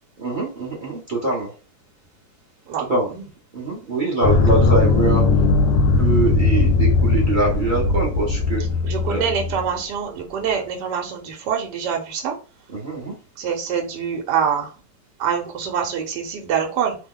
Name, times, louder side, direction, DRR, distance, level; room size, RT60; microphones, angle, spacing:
voice 1, 0.2-1.5 2.8-3.1 3.5-5.2 5.6-8.6 9.1-9.2 12.7-13.1, right 2 dB, 40° right, -3 dB, 0.7 m, -23 dB
sound 1, 4.2-9.7, left 3 dB, 75° left, 1.2 m, -18 dB
voice 2, 8.8-12.3 13.4-14.7 15.2-17.0, right 7 dB, 70° right, 2 dB, 1.3 m, -25 dB
3.2 x 2.1 x 3.5 m, 0.34 s
omnidirectional pair, 2.0 m